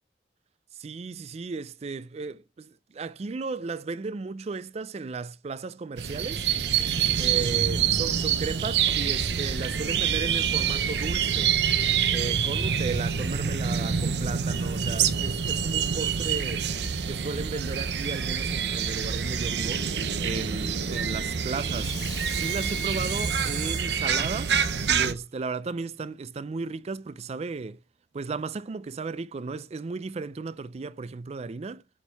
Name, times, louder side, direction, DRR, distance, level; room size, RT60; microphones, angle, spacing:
voice 1, 0.7-6.5 7.2-11.6 12.1-16.7 17.1-22.0 22.3-27.8 28.1-31.8, right 4 dB, 35° right, 0.4 m, -35 dB
sound 1, 6.0-25.1, right 7 dB, 70° right, 0.7 m, -26 dB
Water tap faucet / Sink (filling or washing), 21.7-25.4 25.9-26.0, left 6 dB, 20° left, 0.6 m, -43 dB
7.2 x 4.4 x 3.4 m
head